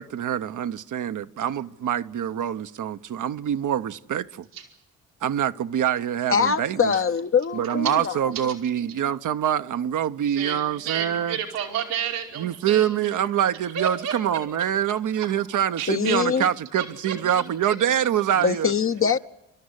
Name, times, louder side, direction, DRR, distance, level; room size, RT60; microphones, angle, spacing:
voice 1, 0.0-4.5 5.2-6.9 7.5-11.4 12.4-18.7, right 10 dB, 65° right, 0.9 m, -25 dB
voice 2, 6.3-8.1 15.9-16.4 18.4-19.2, left 6 dB, 40° left, 0.8 m, -23 dB
voice 3, 10.3-13.1 13.7-14.1 15.2-15.3 15.8-16.2 16.8-17.8 18.0-18.1, right 9 dB, 90° right, 2.7 m, -31 dB
27.5 x 13.0 x 9.8 m
supercardioid pair, 50°, 34 cm